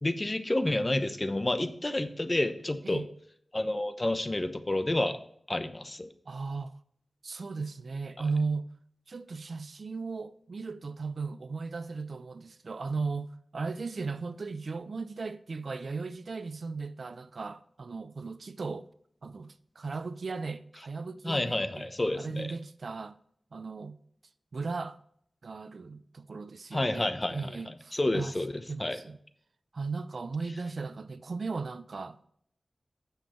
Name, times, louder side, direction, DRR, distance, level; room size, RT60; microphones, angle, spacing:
voice 1, 0.0-3.0 3.5-5.2 5.5-6.1 21.2-22.6 26.7-29.0, left 1 dB, 25° left, 0.9 m, -30 dB
voice 2, 6.3-6.7 7.2-8.7 9.1-18.9 19.2-21.9 22.1-23.1 23.5-24.0 24.5-25.0 25.4-28.3 28.7-29.2 29.7-32.2, right 4 dB, 65° right, 0.5 m, -36 dB
9.0 x 7.3 x 4.4 m
wide cardioid pair, 85°, 0 cm